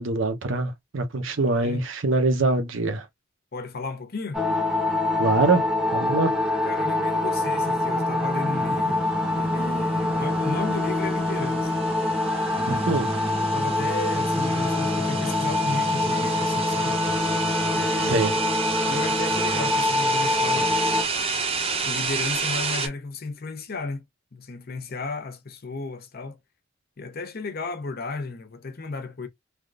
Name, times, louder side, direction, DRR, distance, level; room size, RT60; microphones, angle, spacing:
voice 1, 0.0-3.1 5.2-5.7 5.9-6.4 12.7-13.1 18.0-18.3, right 3 dB, 75° right, 0.8 m, -24 dB
voice 2, 1.4-1.8 3.5-4.4 6.6-9.1 9.4-11.7 12.5-17.0 17.7-18.4 18.9-20.9 21.8-24.0 24.3-26.4 27.0-29.3, left 3 dB, 50° left, 0.7 m, -34 dB
sound 1, 4.3-21.0, left 2 dB, ahead, 0.8 m, -25 dB
sound 2, 10.3-22.9, right 5 dB, 30° right, 0.7 m, -31 dB
3.4 x 2.4 x 2.3 m
head